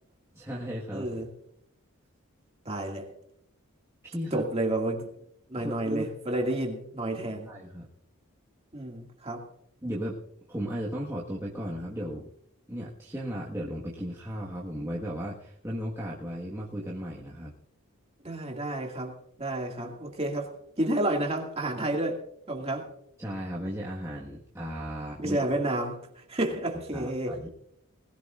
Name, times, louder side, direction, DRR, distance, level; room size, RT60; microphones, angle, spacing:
voice 1, 0.3-1.2 4.0-4.5 5.5-6.0 7.5-7.9 9.8-10.2 10.5-12.3 12.7-17.5 23.2-25.4 25.6-25.7 26.9-27.5, equal, 10° right, -4 dB, 1.5 m, -35 dB
voice 2, 0.9-1.3 2.7-3.1 4.3-5.1 5.5-7.5 8.7-9.5 18.2-22.2 22.5-22.9 25.2-26.0 26.3-27.4, right 1 dB, 25° right, 1 dB, 2.1 m, -30 dB
20.0 x 15.5 x 2.5 m, 0.71 s
head